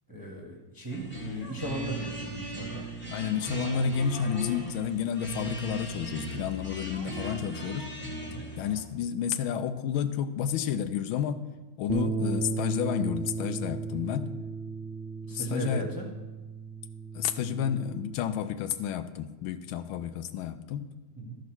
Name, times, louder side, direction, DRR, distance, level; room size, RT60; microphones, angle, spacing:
voice 1, 0.1-2.8 8.2-8.5 15.3-16.1 21.2-21.4, right 1 dB, 15° right, -2 dB, 1.0 m, -37 dB
sound 1, 0.9-8.8, equal, 5° left, 1.4 m, -36 dB
voice 2, 3.1-7.8 8.6-11.4 11.8-14.4 15.3-15.9 17.1-20.9, left 9 dB, 80° left, 10 dB, 1.4 m, -31 dB
sound 2, 11.9-18.1, right 4 dB, 85° right, 0.6 m, -35 dB
13.0 x 4.8 x 6.1 m, 1.1 s
omnidirectional pair, 2.3 m